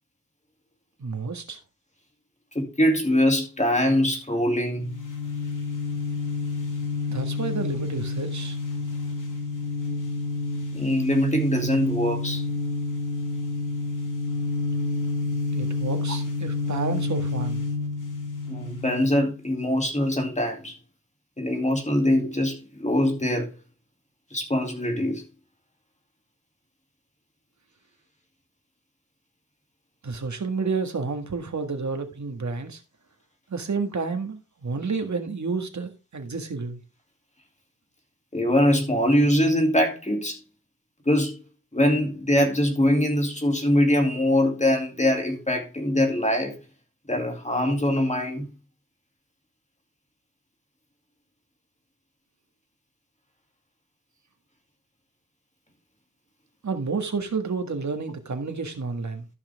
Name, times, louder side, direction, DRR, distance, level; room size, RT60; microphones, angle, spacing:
voice 1, 1.0-1.6 7.1-8.6 15.5-17.6 30.0-32.8 33.5-36.8 56.6-59.3, right 4 dB, 55° right, 1.7 m, -30 dB
voice 2, 2.5-5.0 10.7-12.4 18.5-20.7 21.4-23.5 24.3-25.3 38.3-40.4 41.1-41.4 41.7-46.6 47.1-48.5, left 1 dB, 20° left, 2.4 m, -23 dB
sound 1, 4.8-19.3, left 3 dB, 65° left, 2.6 m, -29 dB
13.5 x 5.8 x 3.4 m
wide cardioid pair, 120°, 34 cm